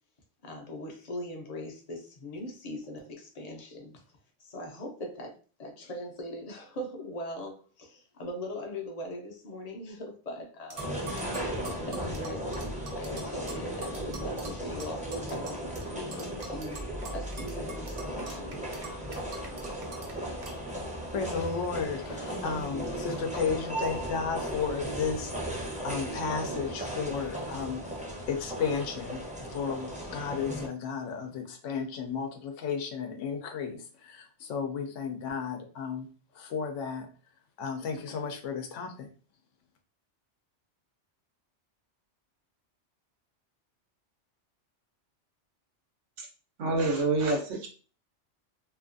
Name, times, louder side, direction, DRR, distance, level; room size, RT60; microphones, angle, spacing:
voice 1, 0.4-4.0 4.4-10.9 11.4-12.5 12.9-18.6, left 1 dB, 40° left, 2 dB, 0.6 m, -41 dB
sound 1, 10.7-15.9 16.1-20.1 20.4-20.6, right 3 dB, 55° right, 0.8 m, -45 dB
sound 2, 10.8-30.7, right 1 dB, 10° right, 0.6 m, -36 dB
voice 2, 21.1-25.3 25.8-27.8 28.3-36.1 36.3-37.1 37.6-39.1, left 6 dB, 80° left, 5 dB, 0.9 m, -33 dB
voice 3, 46.6-47.7, right 3 dB, 80° right, 2 dB, 1.1 m, -27 dB
2.8 x 2.4 x 2.5 m, 0.38 s
omnidirectional pair, 1.2 m